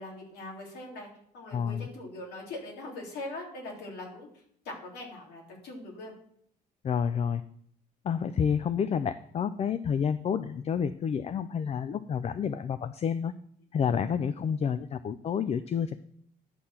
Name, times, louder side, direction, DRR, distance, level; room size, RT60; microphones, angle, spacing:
voice 1, 0.0-4.3 4.7-6.1, left 2 dB, 75° left, 0 dB, 3.5 m, -41 dB
voice 2, 1.5-1.9 6.8-7.4 8.0-13.3 13.7-16.0, left 7 dB, 40° left, 13 dB, 0.5 m, -29 dB
11.0 x 6.7 x 5.8 m, 0.67 s
cardioid pair, 110°, 17 cm